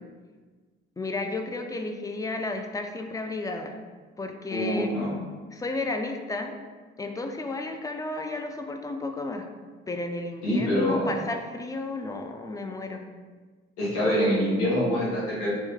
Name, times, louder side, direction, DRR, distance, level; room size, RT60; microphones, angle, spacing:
voice 1, 1.0-3.7 4.2-4.9 5.5-6.5 7.0-9.5 9.9-13.0, left 2 dB, 10° left, 4 dB, 0.4 m, -32 dB
voice 2, 4.5-5.2 10.4-11.1 13.8-15.5, equal, 75° left, -7 dB, 1.5 m, -25 dB
3.1 x 3.1 x 3.4 m, 1.4 s
hypercardioid pair, 55°, 32 cm